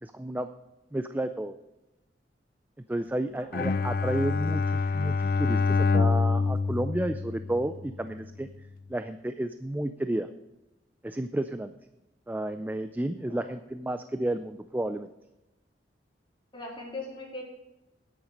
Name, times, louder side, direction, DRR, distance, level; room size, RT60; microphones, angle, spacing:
voice 1, 0.0-0.5 0.9-1.6 2.9-8.5 8.9-10.3 11.0-11.7 12.3-15.1, right 1 dB, 10° right, 9 dB, 0.4 m, -31 dB
Bowed string instrument, 3.5-7.9, left 4 dB, 55° left, 0.5 m, -26 dB
voice 2, 16.5-17.4, left 2 dB, 30° left, -3 dB, 3.6 m, -40 dB
10.0 x 9.0 x 5.3 m, 0.96 s
head